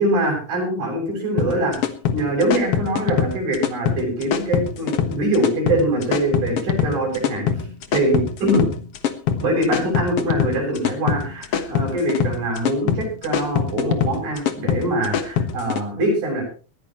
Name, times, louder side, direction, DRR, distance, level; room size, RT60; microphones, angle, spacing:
voice 1, 0.0-1.8 2.1-7.6 7.9-8.7 9.4-16.5, right 1 dB, 75° right, 0 dB, 9.1 m, -23 dB
sound 1, 1.4-15.8, left 8 dB, 60° left, 1.7 m, -23 dB
20.5 x 14.5 x 3.1 m, 0.35 s
omnidirectional pair, 4.3 m